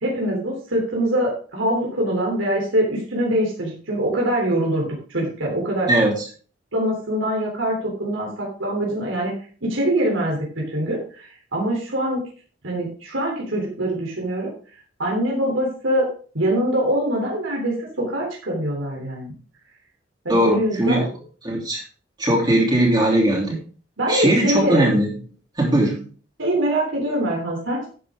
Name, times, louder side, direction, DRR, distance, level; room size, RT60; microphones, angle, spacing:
voice 1, 0.0-5.9 6.7-9.3 9.6-12.2 12.6-14.5 15.0-16.1 16.3-19.3 20.3-21.1 24.0-24.8 26.4-27.9, right 1 dB, 90° right, -2 dB, 3.4 m, -23 dB
voice 2, 20.3-21.1 21.4-21.8 22.2-23.6 24.1-25.2 25.5-26.1, right 1 dB, 20° right, -2 dB, 3.0 m, -19 dB
11.5 x 8.5 x 3.7 m, 0.39 s
head